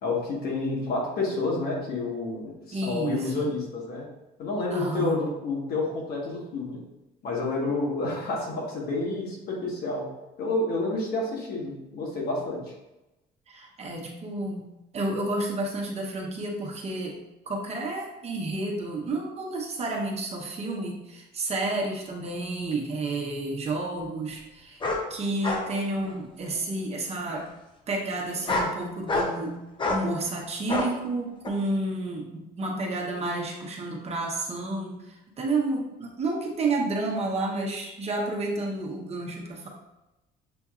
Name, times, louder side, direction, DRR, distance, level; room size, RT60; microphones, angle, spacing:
voice 1, 0.0-4.0 4.4-6.8 7.2-10.1 10.4-12.7, left 2 dB, 65° left, -2 dB, 1.4 m, -29 dB
voice 2, 2.7-3.5 4.7-5.2 13.5-14.7 14.9-17.2 17.5-24.8 25.1-27.5 27.9-29.6 29.9-39.7, right 2 dB, 40° right, 0 dB, 0.9 m, -30 dB
sound 1, 22.7-22.8 24.8-25.0 25.4-25.7 26.0-26.6 27.3-27.5 28.3-28.7 29.1-29.4 29.8-30.0 30.7-30.9 31.4-31.5, left 2 dB, 30° left, 0.7 m, -28 dB
6.8 x 2.6 x 2.4 m, 0.97 s
cardioid pair, 110°, 17 cm